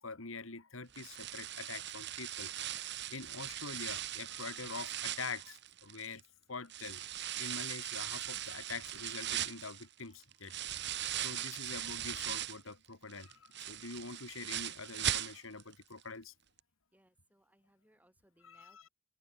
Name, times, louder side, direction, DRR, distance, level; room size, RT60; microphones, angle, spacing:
voice 1, 0.0-2.5 3.1-6.2 6.5-7.0 7.4-10.5 11.1-16.3 18.4-18.9, left 4 dB, 75° left, 2.3 m, -45 dB
sound 1, 0.9-6.2 6.7-12.7 13.1-15.7 16.0-16.1 16.6-16.7, right 11 dB, 55° right, 2.2 m, -39 dB
voice 2, 16.9-18.9, right 1 dB, 5° right, 3.0 m, -69 dB
head